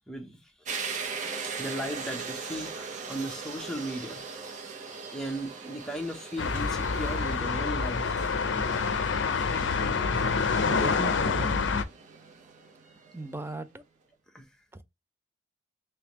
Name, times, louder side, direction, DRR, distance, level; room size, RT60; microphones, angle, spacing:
voice 1, 0.1-0.4 1.4-4.2 5.1-8.2 14.3-14.4, equal, 5° left, 0.8 m, -36 dB
sound 1, 0.6-13.3, right 5 dB, 40° right, 0.8 m, -40 dB
sound 2, 6.4-11.8, left 5 dB, 70° left, 0.5 m, -27 dB
voice 2, 10.6-11.7 13.1-13.8 14.7-14.8, right 3 dB, 10° right, 0.4 m, -38 dB
3.4 x 3.3 x 2.9 m
head